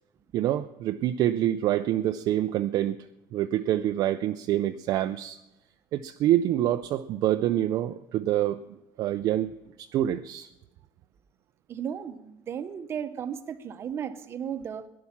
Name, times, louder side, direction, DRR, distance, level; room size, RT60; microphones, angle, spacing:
voice 1, 0.3-3.0 3.3-5.4 5.9-8.6 9.0-10.5, right 12 dB, 45° right, 8 dB, 0.5 m, -26 dB
voice 2, 11.7-14.9, right 8 dB, 30° right, 10 dB, 0.9 m, -35 dB
17.5 x 11.0 x 7.2 m, 0.99 s
cardioid pair, 175°, 9 cm